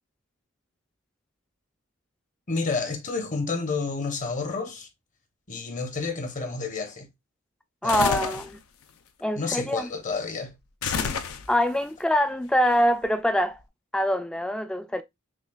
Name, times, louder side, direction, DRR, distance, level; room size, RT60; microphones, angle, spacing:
voice 1, 2.5-4.9 5.5-7.1 7.8-8.4 9.3-10.5 10.8-11.2, left 4 dB, 35° left, 0.8 m, -30 dB
voice 2, 7.8-8.5 9.2-9.9 11.5-13.6 13.9-15.0, equal, 5° left, 0.3 m, -24 dB
sound 1, 7.9-8.5 10.8-11.8, left 6 dB, 85° left, 0.5 m, -29 dB
6.1 x 2.4 x 2.3 m
head